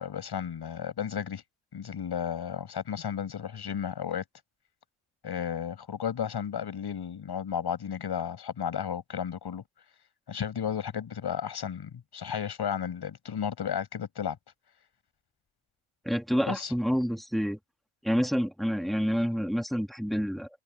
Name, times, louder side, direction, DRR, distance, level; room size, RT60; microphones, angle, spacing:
voice 1, 0.0-1.4 1.7-4.2 5.2-9.6 10.3-14.4 16.5-16.7, left 8 dB, 50° left, 7.6 m, -33 dB
voice 2, 16.1-17.6 18.0-20.5, equal, ahead, 2.1 m, -28 dB
wide cardioid pair, 150°, 49 cm